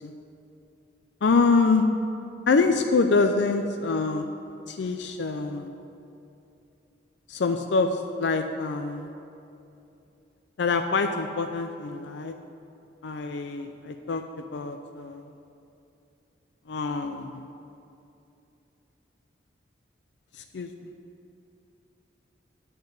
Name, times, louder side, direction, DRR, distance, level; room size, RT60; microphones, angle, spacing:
voice 1, 1.2-1.9 2.5-4.3 4.7-5.7 7.3-9.1 10.6-12.3 13.0-14.2 14.5-15.2 16.7-17.4 20.5-20.7, left 4 dB, 75° left, 6 dB, 0.4 m, -25 dB
11.5 x 4.4 x 8.1 m, 2.8 s
head